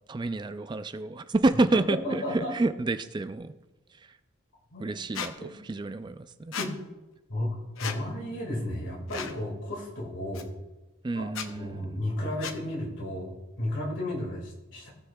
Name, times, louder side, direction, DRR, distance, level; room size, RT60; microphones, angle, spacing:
voice 1, 0.1-3.5 4.8-6.5 11.0-12.0, right 2 dB, 20° right, 11 dB, 0.3 m, -29 dB
voice 2, 2.0-2.5 4.7-4.9 5.4-5.6 6.6-6.7 7.3-10.5 11.1-14.9, left 1 dB, 60° left, -2 dB, 2.0 m, -33 dB
Squeak, 5.1-5.3 6.5-6.7 7.8-8.0 9.1-9.4 10.3-10.4 11.3-11.5 12.4-12.6, left 6 dB, 75° left, 0.7 m, -34 dB
18.0 x 6.4 x 2.3 m, 1.1 s
head